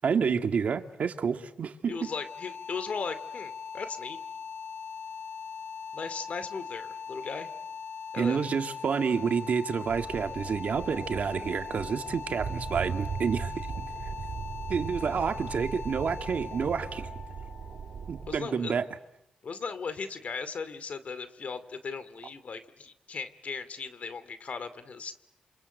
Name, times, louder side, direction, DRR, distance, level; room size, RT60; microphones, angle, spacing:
voice 1, 0.0-2.1 8.2-13.5 14.7-17.1 18.1-18.9, right 6 dB, 60° right, 7 dB, 2.0 m, -29 dB
sound 1, 1.9-18.8, left 6 dB, 75° left, 2.9 m, -41 dB
voice 2, 1.9-4.2 5.9-7.5 8.1-8.5 18.3-18.7 19.4-25.2, left 5 dB, 55° left, 13 dB, 2.4 m, -37 dB
sound 2, 9.9-18.4, right 6 dB, 75° right, 2.2 m, -39 dB
28.5 x 26.0 x 8.0 m, 0.81 s
cardioid pair, 85°, 3 cm